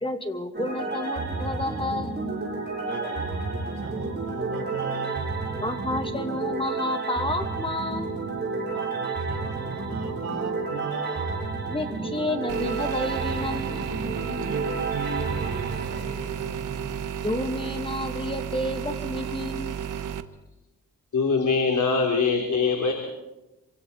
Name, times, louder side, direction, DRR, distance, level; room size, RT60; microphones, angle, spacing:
voice 1, 0.0-2.2 5.6-8.2 11.7-13.9 17.2-19.8, left 1 dB, 15° left, 6 dB, 2.4 m, -30 dB
sound 1, 0.5-16.6, right 3 dB, 30° right, 7.2 m, -31 dB
voice 2, 2.8-5.7 8.7-11.4 14.4-17.1, right 4 dB, 50° right, -5 dB, 7.4 m, -38 dB
sound 2, 12.5-20.2, right 8 dB, 70° right, 1.2 m, -33 dB
voice 3, 21.1-22.9, left 4 dB, 60° left, 2 dB, 3.2 m, -22 dB
26.5 x 25.5 x 4.2 m, 1.0 s
cardioid pair, 85°, 33 cm